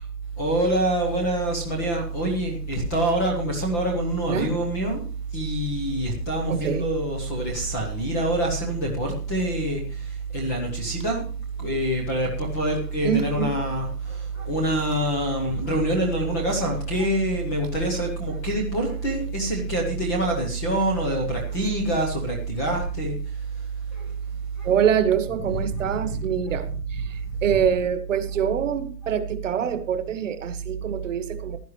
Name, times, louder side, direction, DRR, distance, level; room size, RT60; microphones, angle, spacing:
voice 1, 0.4-5.0 5.3-11.3 11.6-23.2 23.9-24.1 24.6-24.7 25.3-26.6 26.9-27.0 27.4-27.6 29.0-29.1, right 1 dB, 10° left, 0.8 m, -26 dB
voice 2, 6.5-6.8 13.0-13.5 24.6-31.6, right 8 dB, 50° right, 1.3 m, -25 dB
16.0 x 11.0 x 3.1 m
hypercardioid pair, 170°, 50 cm